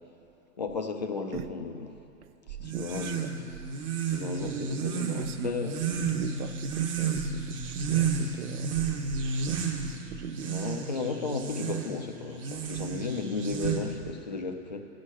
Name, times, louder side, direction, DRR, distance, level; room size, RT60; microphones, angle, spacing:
voice 1, 0.6-1.9 2.6-3.5 4.1-5.8 10.4-14.8, left 4 dB, 30° left, 6 dB, 0.4 m, -34 dB
sound 1, 2.6-14.1, right 5 dB, 20° right, 0.8 m, -32 dB
voice 2, 2.7-3.3 4.4-5.6 5.9-8.8 9.2-9.6 10.1-10.5, right 9 dB, 65° right, 10 dB, 0.6 m, -39 dB
12.5 x 6.5 x 8.9 m, 2.9 s
hypercardioid pair, 160°, 48 cm